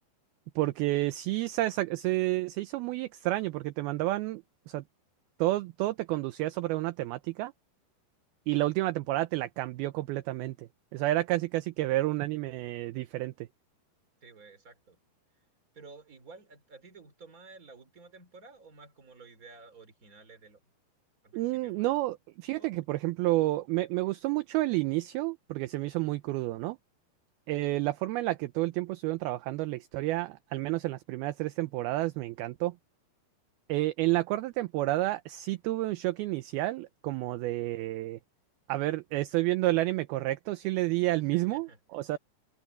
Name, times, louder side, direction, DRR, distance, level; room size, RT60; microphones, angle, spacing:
voice 1, 0.6-4.8 5.4-7.5 8.5-13.3 21.3-26.8 27.5-32.7 33.7-38.2 38.7-42.2, right 17 dB, 80° right, 2.3 m, -30 dB
voice 2, 14.2-15.0 15.7-20.6 21.2-21.9 22.6-22.7 41.1-42.1, right 4 dB, 20° right, 3.4 m, -53 dB
omnidirectional pair, 5.0 m